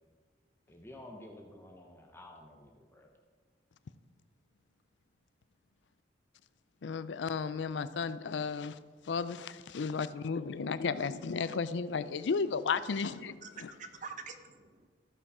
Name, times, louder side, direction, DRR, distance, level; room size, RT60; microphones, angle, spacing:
voice 1, 0.7-3.1, left 1 dB, 15° left, 1 dB, 0.9 m, -51 dB
voice 2, 6.8-8.8 9.1-13.4, left 5 dB, 80° left, 14 dB, 0.4 m, -33 dB
voice 3, 13.2-14.9, right 5 dB, 45° right, 8 dB, 0.7 m, -47 dB
14.0 x 5.5 x 4.8 m, 1.5 s
head